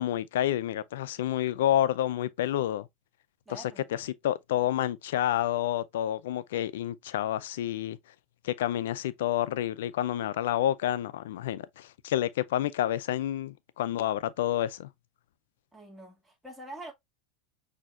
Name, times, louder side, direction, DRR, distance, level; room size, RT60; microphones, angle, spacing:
voice 1, 0.0-2.9 3.5-8.0 8.4-14.9, left 12 dB, 75° left, 0.4 m, -29 dB
voice 2, 3.5-3.9 15.7-16.9, right 1 dB, 10° right, 2.0 m, -45 dB
6.0 x 2.7 x 2.4 m
hypercardioid pair, 90°, 0 cm